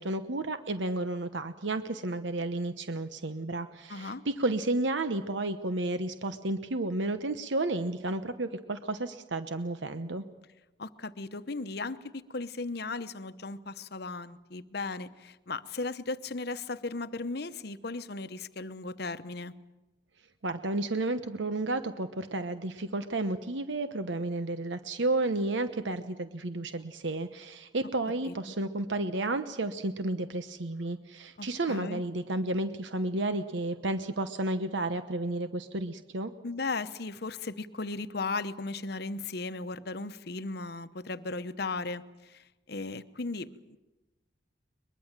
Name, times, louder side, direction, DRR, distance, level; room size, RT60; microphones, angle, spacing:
voice 1, 0.0-10.2 20.4-36.3, right 2 dB, 75° right, 10 dB, 1.0 m, -32 dB
voice 2, 3.9-4.2 10.8-19.5 28.2-28.3 31.4-32.0 36.4-43.8, left 3 dB, 55° left, 12 dB, 0.9 m, -36 dB
23.0 x 21.5 x 7.4 m, 1.1 s
head